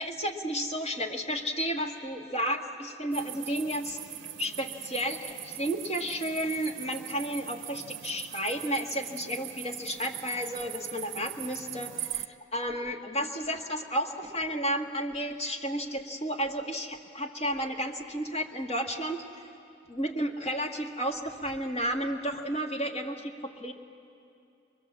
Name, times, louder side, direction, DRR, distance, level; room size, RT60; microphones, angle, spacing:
voice 1, 0.0-4.0 4.4-19.2 19.9-23.7, equal, 35° left, 2 dB, 1.7 m, -32 dB
sound 1, 3.1-12.3, right 13 dB, 75° right, 0.5 m, -41 dB
23.0 x 23.0 x 7.6 m, 2.6 s
head